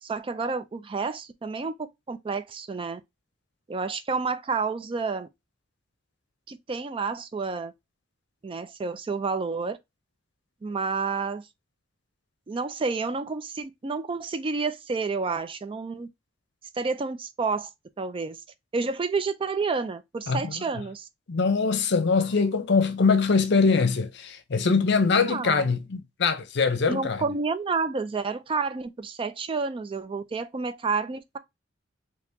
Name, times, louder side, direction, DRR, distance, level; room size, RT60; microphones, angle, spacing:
voice 1, 0.0-3.0 3.7-5.3 6.5-7.7 8.4-9.8 10.6-11.5 12.5-16.1 16.7-17.7 18.0-18.4 18.7-21.1 25.2-25.7 26.9-31.4, right 4 dB, 30° right, 0.3 m, -30 dB
voice 2, 21.3-27.2, left 4 dB, 65° left, 0.6 m, -23 dB
2.9 x 2.8 x 3.5 m
head